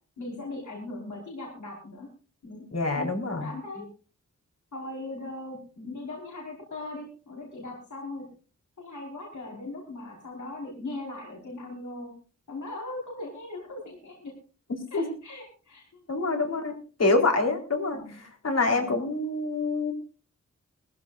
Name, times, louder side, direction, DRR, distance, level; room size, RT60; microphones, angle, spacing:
voice 1, 0.2-2.1 2.4-2.7 2.9-3.1 3.4-3.8 4.7-8.3 8.8-12.1 12.5-14.3 14.9-16.3 17.0-17.1 17.9-18.2 18.7-19.0, left 2 dB, 80° left, -2 dB, 5.1 m, -39 dB
voice 2, 2.7-3.5 14.9-15.2 16.1-16.7 17.0-19.9, left 3 dB, 60° left, 3 dB, 4.2 m, -26 dB
21.0 x 15.5 x 2.6 m, 0.37 s
wide cardioid pair, 75°, 29 cm